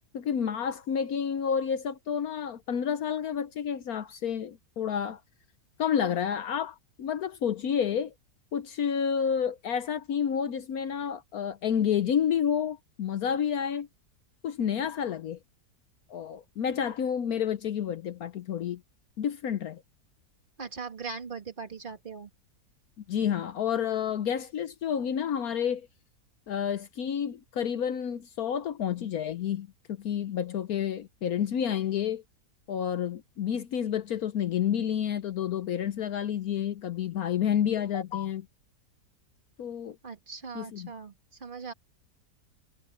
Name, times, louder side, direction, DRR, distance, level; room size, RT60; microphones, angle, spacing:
voice 1, 0.1-5.2 5.8-8.1 8.5-13.9 14.4-15.4 16.1-18.8 19.2-19.8 23.1-25.9 26.5-32.2 32.7-38.5 39.6-40.0 40.5-40.9, left 8 dB, 65° left, 1.2 m, -30 dB
voice 2, 20.6-22.3 40.0-41.1 41.4-41.7, right 5 dB, 30° right, 2.1 m, -39 dB
omnidirectional pair, 1.8 m